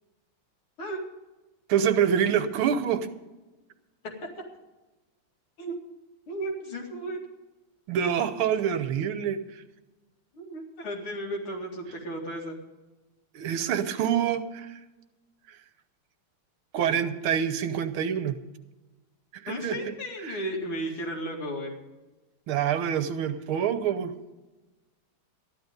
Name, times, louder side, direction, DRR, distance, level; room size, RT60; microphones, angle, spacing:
voice 1, 1.7-3.1 7.9-9.6 13.3-14.8 16.7-18.3 19.3-19.8 20.2-20.4 22.5-24.1, right 8 dB, 75° right, 11 dB, 1.6 m, -26 dB
voice 2, 6.3-7.2 10.3-12.6 19.5-21.7, right 1 dB, 70° left, 0 dB, 3.1 m, -34 dB
13.5 x 11.0 x 5.3 m, 1.1 s
omnidirectional pair, 2.4 m